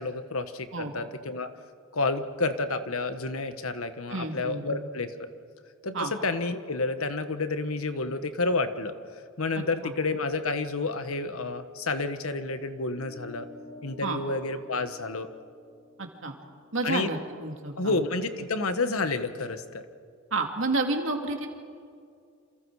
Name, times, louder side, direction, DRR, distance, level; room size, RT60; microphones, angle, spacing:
voice 1, 0.0-1.5 1.9-5.1 5.8-8.9 9.4-13.5 13.8-15.3 16.8-17.1 17.8-19.8, left 3 dB, 75° left, 9 dB, 1.4 m, -30 dB
voice 2, 4.1-4.9 5.9-6.1 9.6-9.7 14.0-14.2 16.0-16.3 16.7-18.0 20.3-21.5, right 3 dB, 60° right, 3 dB, 2.5 m, -30 dB
sound 1, 12.8-17.6, left 3 dB, 25° left, 3.7 m, -51 dB
28.5 x 27.5 x 4.8 m, 2.3 s
head